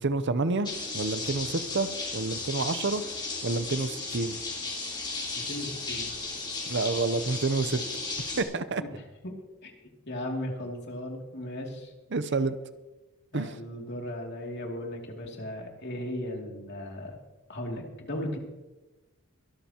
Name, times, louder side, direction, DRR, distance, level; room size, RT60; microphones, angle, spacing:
voice 1, 0.0-3.0 3.4-4.4 6.7-7.8 8.4-8.8 12.1-12.6 13.3-13.6, right 3 dB, 55° right, 12 dB, 0.7 m, -28 dB
sound 1, 0.6-8.4, left 3 dB, 20° left, 3.6 m, -35 dB
voice 2, 5.3-6.1 8.3-8.4 8.8-9.7 10.1-11.9 13.3-17.2 17.5-18.4, left 1 dB, 55° left, 1 dB, 2.7 m, -37 dB
23.0 x 12.5 x 2.9 m, 1.1 s
head